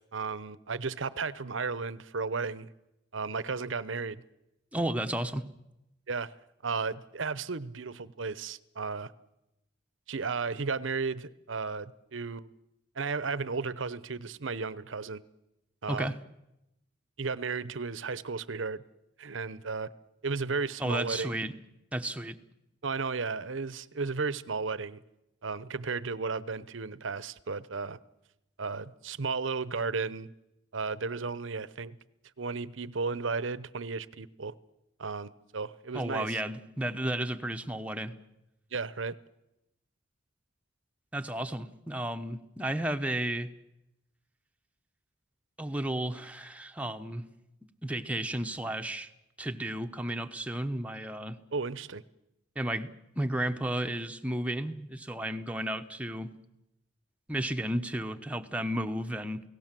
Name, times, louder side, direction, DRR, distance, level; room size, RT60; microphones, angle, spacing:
voice 1, 0.0-2.7 3.1-4.2 6.1-6.3 6.6-9.1 10.1-12.5 13.0-15.2 15.8-16.1 17.2-18.8 19.2-19.9 20.2-21.3 22.8-25.0 25.4-28.0 28.6-30.3 30.7-32.0 32.4-34.5 35.0-36.4 38.7-39.2 51.5-52.0, right 4 dB, 75° right, 17 dB, 0.8 m, -34 dB
voice 2, 4.7-5.5 15.9-16.2 20.8-21.5 21.9-22.4 35.9-38.1 41.1-43.5 45.6-47.2 47.8-49.1 49.4-51.4 52.5-52.9 53.2-56.3 57.3-59.4, right 1 dB, 5° right, 6 dB, 1.0 m, -33 dB
29.0 x 18.0 x 7.6 m, 0.91 s
head